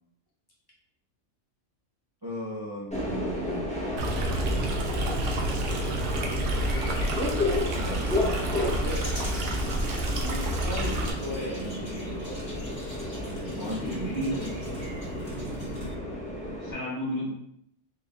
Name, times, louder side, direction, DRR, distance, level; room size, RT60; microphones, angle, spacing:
voice 1, 2.2-3.9 4.4-4.7 7.7-9.1 10.2-12.4 13.3-14.4, equal, 25° right, -6 dB, 0.6 m, -37 dB
Subway metro underground, 2.9-16.7, left 1 dB, 5° left, 0.8 m, -33 dB
Stream, 4.0-11.1, right 1 dB, 85° right, 1.0 m, -29 dB
sound 1, 4.9-16.0, right 1 dB, 25° left, 1.3 m, -41 dB
voice 2, 13.8-14.5 16.4-17.3, equal, 55° left, -4 dB, 1.4 m, -32 dB
3.9 x 2.6 x 3.5 m, 0.74 s
omnidirectional pair, 1.3 m